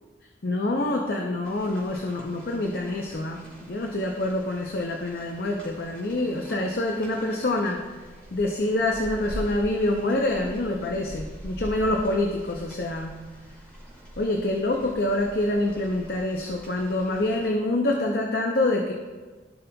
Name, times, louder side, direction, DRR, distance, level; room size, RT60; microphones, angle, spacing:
voice 1, 0.4-7.8 8.3-13.2 14.2-18.9, left 1 dB, 50° left, 1 dB, 0.6 m, -26 dB
Rain, 1.4-17.5, right 1 dB, 5° left, 2.2 m, -43 dB
15.0 x 5.4 x 2.3 m, 1.3 s
head